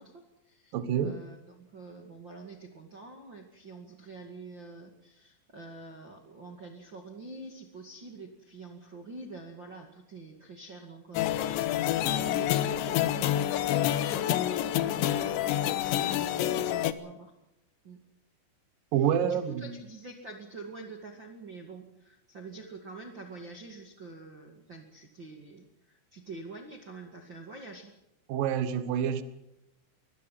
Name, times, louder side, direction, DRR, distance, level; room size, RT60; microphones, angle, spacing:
voice 1, 0.0-0.7 1.0-11.8 12.0-17.3 17.8-18.0 19.2-27.9, right 3 dB, 45° right, 3 dB, 1.5 m, -46 dB
voice 2, 0.7-1.2 18.9-19.7 28.3-29.2, right 9 dB, 80° right, 11 dB, 2.0 m, -27 dB
sound 1, 11.2-16.9, left 12 dB, 75° left, 3.0 m, -28 dB
23.5 x 21.5 x 5.9 m, 0.84 s
omnidirectional pair, 6.0 m